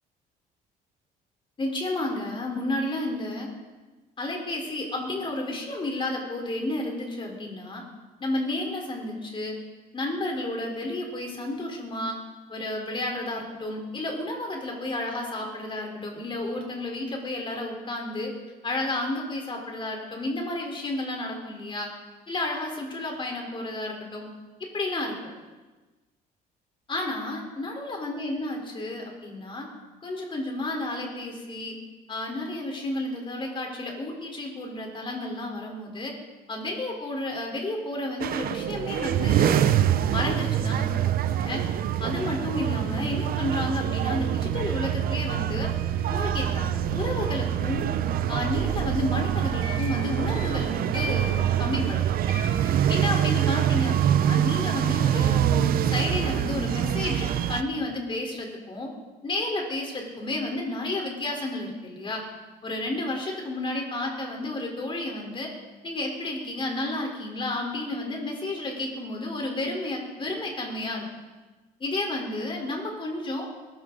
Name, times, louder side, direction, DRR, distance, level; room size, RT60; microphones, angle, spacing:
voice 1, 1.6-3.5 4.2-7.8 8.2-9.6 9.9-12.2 12.5-18.3 18.6-21.9 22.3-24.3 24.7-25.1 26.9-29.7 30.0-31.8 32.1-36.1 36.5-41.6 42.0-45.7 46.1-47.9 48.3-52.1 52.9-55.5 55.9-58.9 59.2-62.2 62.6-65.5 65.8-71.0 71.8-73.5, left 2 dB, 30° left, 1 dB, 4.2 m, -31 dB
sound 1, 38.2-57.6, right 10 dB, 60° right, 0.9 m, -25 dB
sound 2, 49.2-52.0 52.3-53.6, left 2 dB, 30° right, 6.3 m, -40 dB
21.5 x 13.5 x 4.0 m, 1.2 s
cardioid pair, 110°, 17 cm